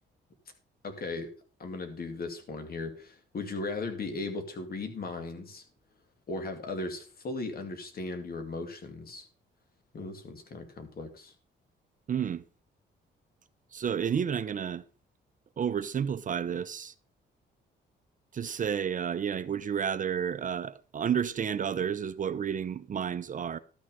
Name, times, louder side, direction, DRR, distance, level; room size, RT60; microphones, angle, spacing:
voice 1, 0.8-1.3 1.6-5.6 6.3-9.3 9.9-11.3, left 3 dB, 50° left, 2.4 m, -37 dB
voice 2, 12.1-12.4 13.7-14.8 15.6-16.9 18.3-23.6, right 8 dB, 40° right, 0.6 m, -31 dB
12.5 x 6.3 x 5.3 m
cardioid pair, 90°, 20 cm